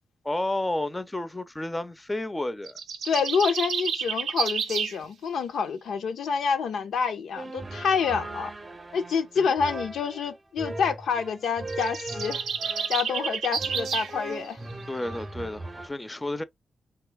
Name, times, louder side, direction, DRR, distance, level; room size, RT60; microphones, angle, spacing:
voice 1, 0.2-2.8 9.4-9.5 14.9-16.4, left 1 dB, 15° left, 0.5 m, -31 dB
sound 1, 2.7-5.0 11.6-14.1, right 6 dB, 85° right, 0.5 m, -30 dB
voice 2, 3.0-8.5 8.9-12.4 12.9-14.6, left 6 dB, 85° left, 0.5 m, -27 dB
sound 2, 7.4-15.9, right 2 dB, 30° right, 0.6 m, -38 dB
2.9 x 2.3 x 3.3 m
cardioid pair, 60°, 0 cm